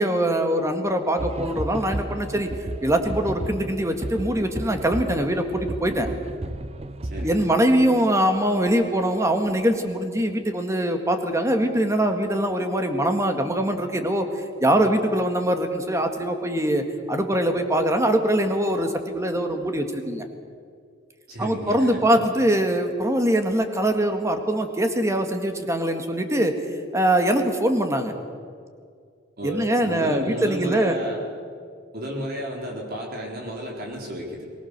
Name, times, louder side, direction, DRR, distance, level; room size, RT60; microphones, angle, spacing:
voice 1, 0.0-2.5 2.8-6.1 7.2-20.3 21.4-26.6 26.9-28.2 29.4-31.0, right 1 dB, 15° right, 6 dB, 1.8 m, -23 dB
sound 1, 1.2-7.5, right 1 dB, 35° right, 0.7 m, -33 dB
voice 2, 7.1-7.5 21.3-22.2 29.4-31.2 31.9-34.4, equal, 55° right, -1 dB, 4.1 m, -32 dB
23.5 x 19.0 x 6.7 m, 2.2 s
head